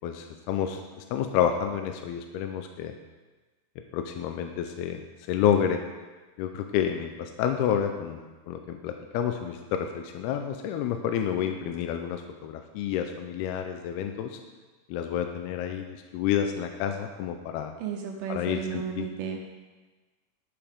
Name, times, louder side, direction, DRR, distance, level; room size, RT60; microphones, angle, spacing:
voice 1, 0.0-0.8 1.1-2.9 3.9-5.0 5.3-5.8 6.4-8.2 8.5-14.4 14.9-17.7 18.3-19.1, left 9 dB, 80° left, 6 dB, 2.4 m, -29 dB
voice 2, 17.8-19.4, right 7 dB, 75° right, 2 dB, 2.5 m, -33 dB
11.5 x 8.6 x 3.6 m, 1.3 s
omnidirectional pair, 4.9 m